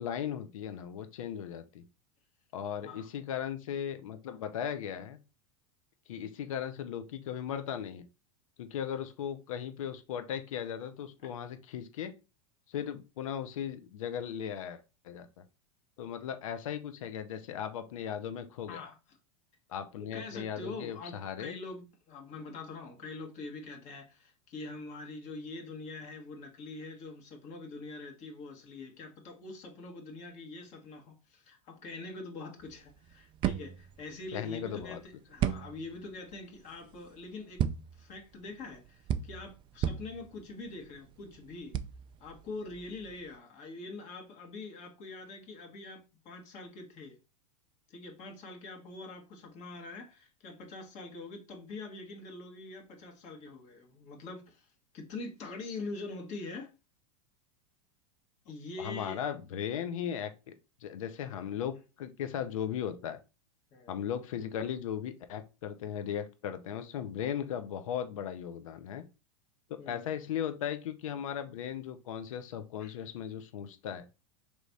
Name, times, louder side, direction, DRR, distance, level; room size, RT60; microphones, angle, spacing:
voice 1, 0.0-1.8 2.5-5.2 6.1-8.1 8.6-12.2 12.7-15.4 16.0-18.8 19.7-21.6 34.3-35.0 58.8-60.5 60.8-63.2 63.9-69.0 69.7-74.1, left 9 dB, 80° left, 0.6 m, -37 dB
voice 2, 20.0-37.6 38.0-41.8 42.2-47.2 47.9-54.7 54.9-56.7 58.4-59.3 61.2-61.5 63.7-64.0 69.8-70.0 72.8-73.0, left 3 dB, 45° left, 1.4 m, -44 dB
sound 1, 32.6-43.4, right 9 dB, 30° right, 0.3 m, -37 dB
3.5 x 3.1 x 4.0 m
hypercardioid pair, 110°, 17 cm